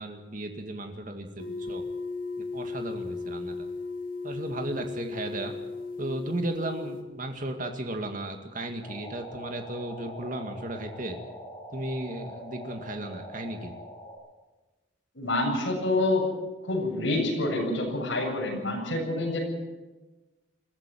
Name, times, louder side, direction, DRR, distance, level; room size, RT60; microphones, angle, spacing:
voice 1, 0.0-1.8 2.4-3.7 4.2-5.5 6.0-11.2 11.7-13.7, right 1 dB, 40° right, 5 dB, 2.2 m, -35 dB
sound 1, 1.4-7.0, left 3 dB, 45° left, 2.6 m, -36 dB
sound 2, 8.8-14.1, equal, 15° left, 7.7 m, -43 dB
voice 2, 15.1-16.2 16.6-19.4, left 2 dB, 70° left, 0 dB, 7.7 m, -27 dB
21.5 x 15.0 x 9.3 m, 1.2 s
head